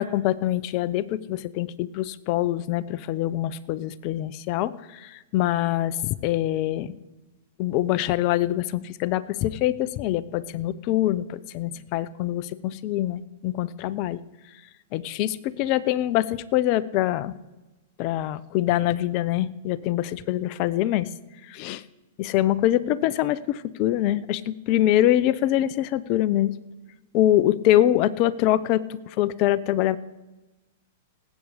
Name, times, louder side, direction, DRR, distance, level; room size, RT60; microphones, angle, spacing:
voice 1, 0.0-6.9 7.6-14.2 14.9-17.3 18.0-21.1 21.4-21.8 22.2-26.5 27.1-30.0, left 13 dB, 45° left, 15 dB, 0.6 m, -24 dB
18.5 x 8.4 x 5.1 m, 1.1 s
hypercardioid pair, 110°, 0 cm